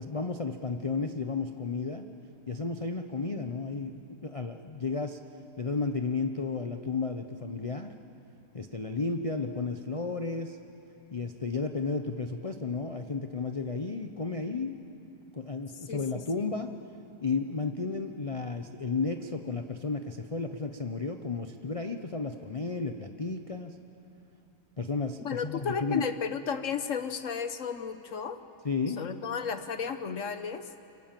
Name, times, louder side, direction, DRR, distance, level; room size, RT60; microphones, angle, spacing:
voice 1, 0.0-2.1 2.5-5.2 5.6-7.9 8.5-10.6 11.1-14.8 15.3-16.7 17.2-23.8 24.8-26.1 28.6-29.0, left 4 dB, 35° left, 6 dB, 0.5 m, -33 dB
voice 2, 15.9-16.5 25.2-28.4 29.0-30.7, left 6 dB, 55° left, 10 dB, 1.2 m, -33 dB
26.0 x 24.5 x 7.5 m, 2.8 s
omnidirectional pair, 1.8 m